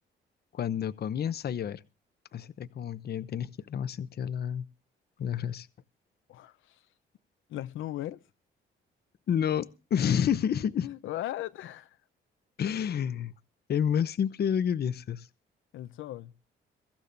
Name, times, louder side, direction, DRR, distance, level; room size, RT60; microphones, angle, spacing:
voice 1, 0.5-1.8 2.3-4.6 5.2-5.7 9.3-10.9 12.6-13.3 13.7-15.3, left 8 dB, 55° left, 0.8 m, -29 dB
voice 2, 6.3-6.9 7.5-8.2 10.8-12.0 15.7-16.3, left 14 dB, 80° left, 0.8 m, -38 dB
23.5 x 14.5 x 2.6 m
cardioid pair, 90°, 20 cm